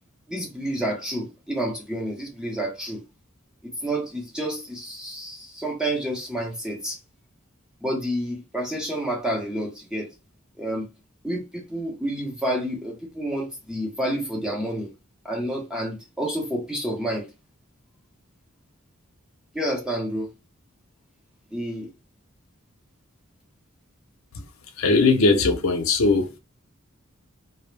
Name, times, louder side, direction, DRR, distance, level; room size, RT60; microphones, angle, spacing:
voice 1, 0.3-3.0 3.6-7.0 7.8-10.1 10.6-10.9 11.2-14.9 15.2-17.3 19.5-20.3 21.5-21.9, right 1 dB, 5° right, 0.7 m, -29 dB
voice 2, 24.8-26.3, left 3 dB, 75° left, 0.6 m, -19 dB
2.4 x 2.0 x 3.1 m
head